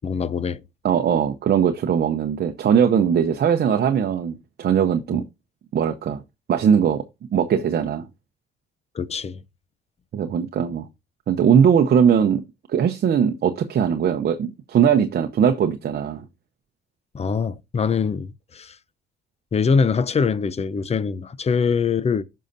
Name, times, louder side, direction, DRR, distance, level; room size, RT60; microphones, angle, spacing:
voice 1, 0.0-0.6 5.1-5.2 8.9-9.4 17.1-18.8 19.5-22.2, left 5 dB, 30° left, 0.6 m, -23 dB
voice 2, 0.8-5.2 5.7-6.2 6.5-7.0 7.3-8.1 10.1-10.9 11.3-12.4 12.7-16.2, right 8 dB, 55° right, 0.8 m, -20 dB
14.5 x 5.6 x 2.6 m
cardioid pair, 90°, 20 cm